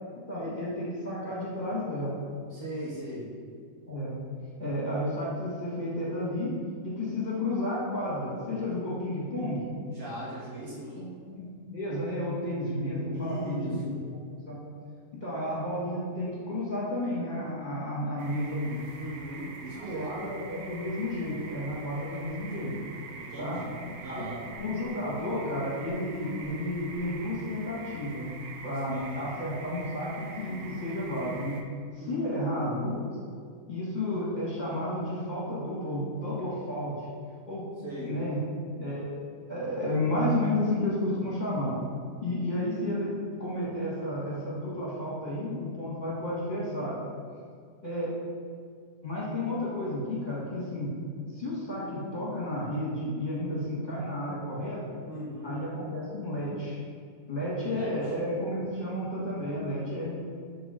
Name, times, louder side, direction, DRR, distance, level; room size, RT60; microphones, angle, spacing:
voice 1, 0.3-2.2 3.9-4.1 4.6-6.5 6.8-9.6 11.0-13.9 14.3-14.6 15.2-18.8 19.7-22.7 23.4-23.6 24.1-24.3 24.6-28.3 28.6-31.6 32.1-33.1 33.7-37.1 37.5-37.7 38.0-38.4 38.8-39.1 39.5-41.7 42.2-47.0 47.8-48.1 49.0-50.9 51.3-55.0 55.4-56.8 57.3-60.1, left 1 dB, 25° left, -8 dB, 1.7 m, -32 dB
voice 2, 2.5-3.3 9.9-11.1 13.1-13.9 18.9-20.1 23.1-24.4 28.9-29.3 32.0-32.5 37.8-38.2 55.1-55.6 57.7-58.1, right 1 dB, 55° right, -8 dB, 2.2 m, -39 dB
sound 1, 18.2-31.6, right 4 dB, 70° right, 1.1 m, -45 dB
4.6 x 3.9 x 5.6 m, 2.1 s
omnidirectional pair, 1.9 m